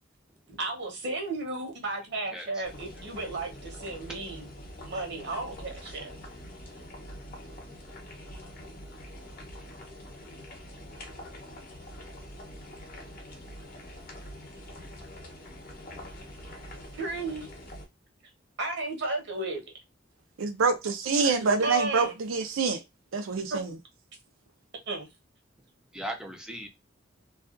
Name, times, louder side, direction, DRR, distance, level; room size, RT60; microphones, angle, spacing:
voice 1, 0.6-4.5 4.8-6.1 16.9-17.5 18.6-19.6 21.6-22.2 23.5-23.6 24.9-25.1, right 2 dB, 60° right, 0.9 m, -33 dB
voice 2, 2.3-2.6 4.1-4.2 25.9-26.7, right 1 dB, 5° right, 0.5 m, -38 dB
sound 1, 2.6-17.9, left 1 dB, 45° left, 0.8 m, -45 dB
voice 3, 20.4-22.8 23.1-23.8, right 4 dB, 80° right, 0.5 m, -26 dB
2.4 x 2.3 x 2.4 m
head